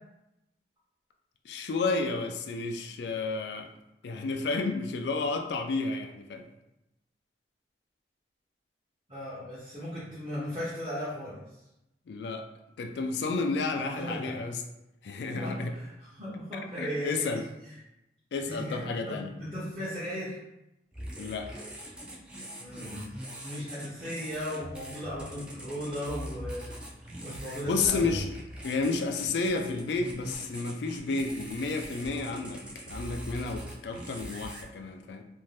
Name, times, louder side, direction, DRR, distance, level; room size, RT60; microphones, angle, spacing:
voice 1, 1.5-3.7 4.0-6.4 12.1-12.4 12.8-14.6 15.0-15.7 16.8-17.5 18.3-19.3 21.2-21.5 27.7-28.3 28.6-35.2, left 3 dB, 75° left, 5 dB, 0.3 m, -31 dB
voice 2, 9.1-11.4 14.0-14.3 15.3-17.4 18.4-20.4 22.6-23.1 23.4-26.7 27.2-28.2, equal, 30° right, -10 dB, 0.7 m, -37 dB
sound 1, 20.9-34.6, equal, 5° right, 0.3 m, -42 dB
2.6 x 2.1 x 3.1 m, 0.91 s
head